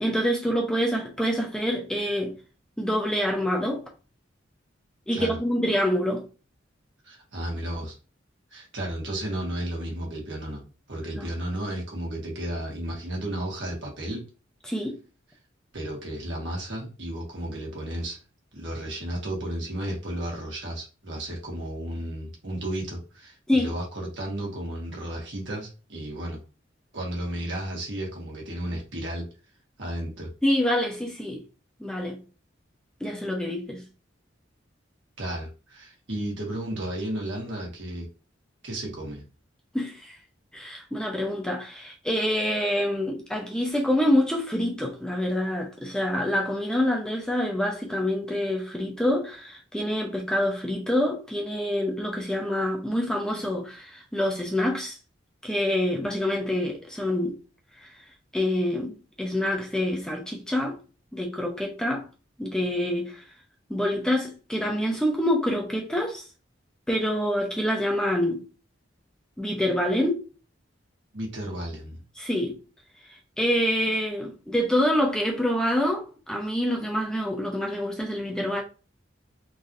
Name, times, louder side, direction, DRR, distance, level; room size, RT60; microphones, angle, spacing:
voice 1, 0.0-2.4 2.8-3.8 5.1-6.2 11.2-11.3 14.7-14.9 23.5-23.7 30.4-31.4 31.8-32.2 33.0-33.8 39.7-40.2 40.5-55.0 55.4-57.3 57.8-57.9 58.3-60.8 61.1-62.0 62.4-63.2 63.7-66.2 66.9-68.4 69.4-70.2 72.2-72.6 73.4-78.6, left 1 dB, 5° left, 0.6 m, -26 dB
voice 2, 7.0-8.0 8.5-10.6 10.9-14.2 15.7-18.2 18.5-26.4 26.9-29.3 29.8-30.3 35.2-38.1 38.6-39.2 71.1-72.0, right 1 dB, 65° right, 1.6 m, -33 dB
3.8 x 3.1 x 2.6 m
head